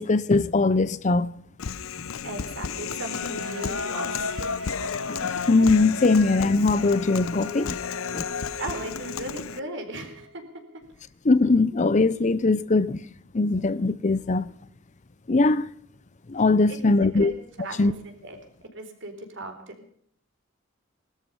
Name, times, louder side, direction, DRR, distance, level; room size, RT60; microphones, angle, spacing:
voice 1, 0.0-1.3 5.2-7.8 8.1-8.3 11.2-13.0 13.3-14.5 15.3-15.7 16.3-17.3 17.8-17.9, left 3 dB, 35° left, 0.6 m, -21 dB
Human voice, 1.6-9.6, left 7 dB, 85° left, 0.6 m, -33 dB
voice 2, 2.2-4.3 8.6-10.4 16.7-17.3 17.6-18.4 18.6-19.9, right 2 dB, 65° right, 3.9 m, -37 dB
sound 1, 3.0-10.8, left 1 dB, 85° right, 2.3 m, -39 dB
20.0 x 13.0 x 5.5 m
head